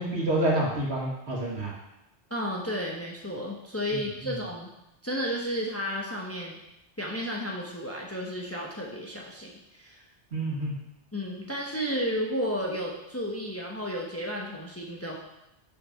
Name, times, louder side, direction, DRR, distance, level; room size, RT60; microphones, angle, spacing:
voice 1, 0.0-1.7 4.2-4.3 10.3-10.7, right 1 dB, 65° right, -4 dB, 2.1 m, -28 dB
voice 2, 2.3-4.7 5.0-6.6 7.0-10.0 11.1-15.2, equal, 15° left, -2 dB, 1.0 m, -32 dB
6.7 x 5.2 x 5.7 m, 0.88 s
omnidirectional pair, 1.2 m